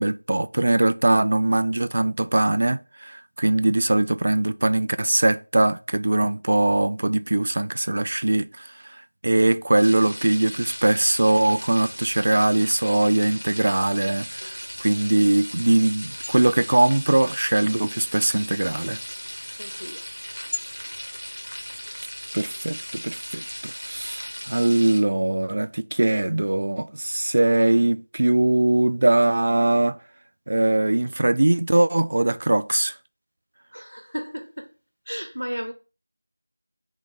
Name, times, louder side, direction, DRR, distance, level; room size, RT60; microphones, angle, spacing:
voice 1, 0.0-19.0 22.3-30.0 30.5-33.0, right 2 dB, 35° right, 0.3 m, -21 dB
sound 1, 9.8-25.0, equal, 85° left, 2.3 m, -37 dB
voice 2, 19.6-20.0 33.7-34.7 35.1-35.7, equal, 80° right, 0.9 m, -34 dB
8.0 x 3.7 x 3.8 m
figure-of-eight pair, 170°, 0 cm